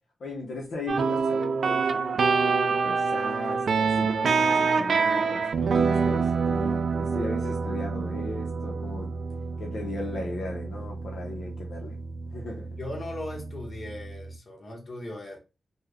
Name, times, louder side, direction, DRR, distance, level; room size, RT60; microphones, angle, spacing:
voice 1, 0.2-9.1 9.6-12.0 12.3-12.7, left 2 dB, 90° left, 0.7 m, -37 dB
sound 1, 0.9-14.4, right 5 dB, 75° right, 0.4 m, -27 dB
voice 2, 12.8-15.4, left 1 dB, 50° left, 1.1 m, -38 dB
3.5 x 2.2 x 3.3 m
wide cardioid pair, 85°, 0 cm